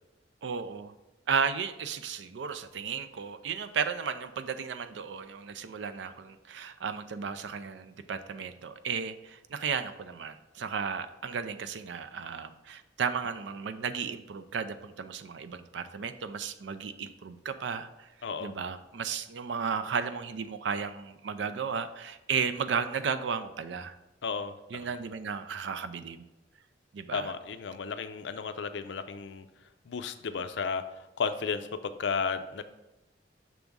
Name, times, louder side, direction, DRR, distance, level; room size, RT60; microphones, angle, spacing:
voice 1, 0.4-0.9 1.3-18.1 18.4-23.9 24.7-26.3 26.9-27.3, right 6 dB, 80° right, 11 dB, 0.4 m, -34 dB
voice 2, 18.2-18.5 24.2-24.9 27.1-29.5 29.9-30.8 31.2-32.6, left 5 dB, 80° left, 10 dB, 0.5 m, -33 dB
6.1 x 3.5 x 5.3 m, 0.99 s
head